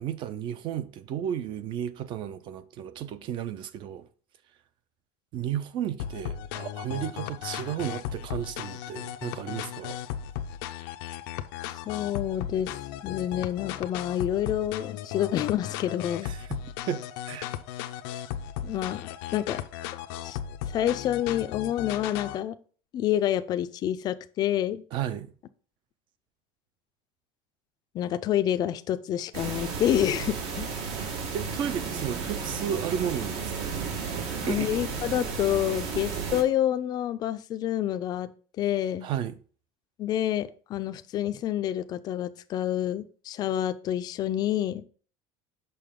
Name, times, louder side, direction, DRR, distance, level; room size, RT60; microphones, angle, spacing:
voice 1, 0.0-4.0 5.3-10.0 16.2-16.6 16.9-17.5 24.9-25.3 31.1-33.8 34.1-34.8 39.0-39.3, right 9 dB, 40° right, 0.6 m, -33 dB
sound 1, 6.0-22.4, left 11 dB, 80° left, 0.6 m, -36 dB
voice 2, 11.7-16.3 18.6-19.0 19.3-19.6 20.2-20.4 20.7-22.6 22.9-24.8 27.9-30.7 34.4-38.3 38.6-39.1 40.0-44.8, left 11 dB, 35° left, 0.4 m, -28 dB
sound 2, 29.3-36.4, right 5 dB, 70° right, 1.6 m, -33 dB
6.7 x 5.6 x 3.7 m
cardioid pair, 155°, 12 cm